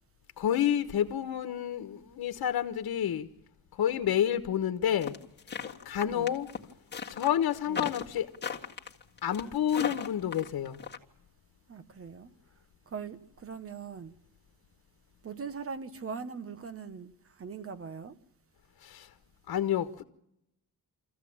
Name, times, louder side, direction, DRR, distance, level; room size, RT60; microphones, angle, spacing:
voice 1, 0.4-3.3 3.8-5.1 5.6-6.5 7.1-8.3 9.2-10.8 18.8-19.1 19.5-20.0, left 10 dB, 80° left, 1.2 m, -29 dB
sound 1, 5.0-11.0, left 7 dB, 30° left, 1.8 m, -36 dB
voice 2, 6.0-6.3 7.7-7.9 11.7-12.3 12.9-14.2 15.2-18.2, right 5 dB, 40° right, 1.2 m, -41 dB
24.5 x 15.0 x 8.7 m
wide cardioid pair, 155°, 36 cm